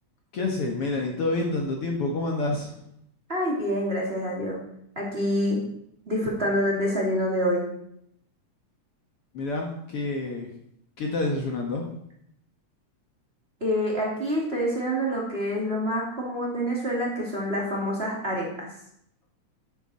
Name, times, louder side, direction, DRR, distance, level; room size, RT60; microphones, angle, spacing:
voice 1, 0.3-2.7 9.3-10.5 11.0-11.8, left 2 dB, 55° left, 1 dB, 2.1 m, -28 dB
voice 2, 3.3-4.6 5.0-5.6 6.1-7.7 13.6-18.7, equal, 20° right, -3 dB, 2.5 m, -27 dB
12.5 x 9.7 x 4.2 m, 0.71 s
omnidirectional pair, 3.5 m